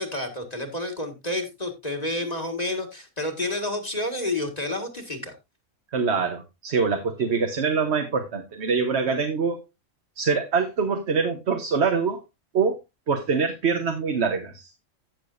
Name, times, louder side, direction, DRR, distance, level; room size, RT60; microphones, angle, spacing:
voice 1, 0.0-5.3, left 1 dB, 30° left, 1.8 m, -30 dB
voice 2, 5.9-9.6 10.2-12.2 12.5-12.8 13.1-14.7, right 5 dB, 55° right, 1.3 m, -24 dB
15.5 x 6.8 x 2.6 m
omnidirectional pair, 1.4 m